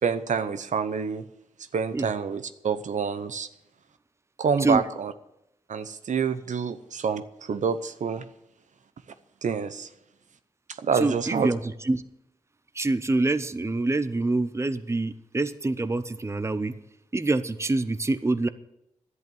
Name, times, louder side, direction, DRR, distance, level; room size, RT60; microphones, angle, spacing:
voice 1, 0.0-1.2 1.7-3.5 4.4-5.1 5.7-8.3 9.4-9.9 10.8-11.5, right 6 dB, 70° right, 11 dB, 0.8 m, -27 dB
voice 2, 11.0-11.6 11.9-12.0 12.8-16.7 17.1-18.5, right 2 dB, 20° right, 13 dB, 0.7 m, -25 dB
11.0 x 8.2 x 9.2 m, 0.85 s
cardioid pair, 60°, 13 cm